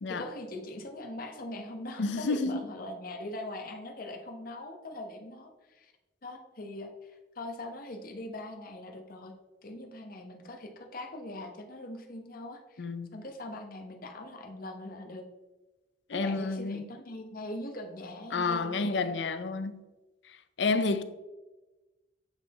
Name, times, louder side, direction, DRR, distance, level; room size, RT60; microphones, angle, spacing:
voice 1, 0.1-5.9 6.2-9.3 9.6-15.2 16.1-19.2, left 1 dB, 55° left, 0.9 m, -42 dB
voice 2, 2.0-2.6 12.8-13.2 16.1-16.8 18.3-19.8 20.3-21.0, left 3 dB, 80° left, 0.5 m, -30 dB
8.0 x 3.8 x 4.1 m
head